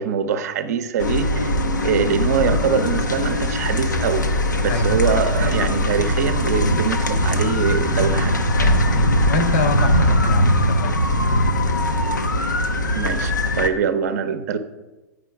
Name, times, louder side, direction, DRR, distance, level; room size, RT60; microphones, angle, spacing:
voice 1, 0.0-1.6 1.8-4.2 4.6-8.7 12.9-14.6, right 7 dB, 55° right, 10 dB, 0.6 m, -23 dB
sound 1, 1.0-13.7, left 1 dB, 85° left, 0.7 m, -20 dB
voice 2, 8.8-11.0, left 2 dB, 50° left, 9 dB, 0.9 m, -25 dB
8.2 x 5.1 x 4.6 m, 1.1 s
figure-of-eight pair, 110°, 10 cm